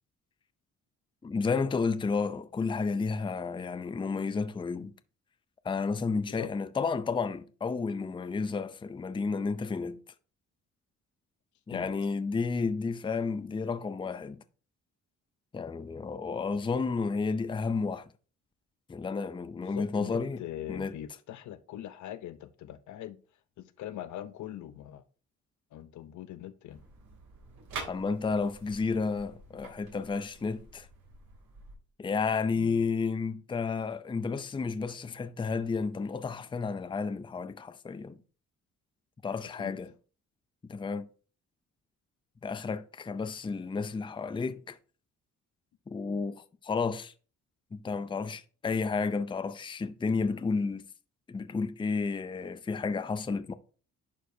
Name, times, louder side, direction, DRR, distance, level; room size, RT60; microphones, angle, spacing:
voice 1, 1.2-4.9 5.6-10.0 11.7-14.4 15.5-18.1 18.9-20.4 20.7-20.9 27.9-30.9 32.0-38.2 39.2-39.9 40.7-41.1 42.4-44.8 45.9-47.1 47.7-50.9 51.3-53.5, left 4 dB, 15° left, 0.5 m, -31 dB
voice 2, 19.6-23.2 23.6-25.0 25.7-26.8 32.5-32.8 39.6-39.7, left 12 dB, 70° left, 0.7 m, -42 dB
Door front opening, 26.7-31.7, right 4 dB, 80° right, 2.9 m, -47 dB
11.0 x 4.7 x 2.7 m
cardioid pair, 90°, 30 cm